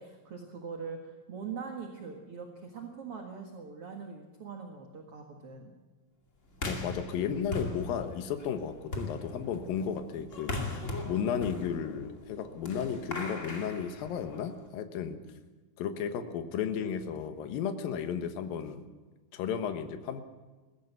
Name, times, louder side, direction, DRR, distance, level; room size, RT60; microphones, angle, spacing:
voice 1, 0.0-5.7, right 5 dB, 45° right, 2 dB, 2.3 m, -42 dB
sound 1, 6.5-14.6, left 2 dB, 25° left, 1.9 m, -40 dB
voice 2, 6.6-15.2 15.8-18.9 19.3-20.2, left 7 dB, 70° left, 7 dB, 2.9 m, -34 dB
21.0 x 15.0 x 8.3 m, 1.3 s
omnidirectional pair, 4.4 m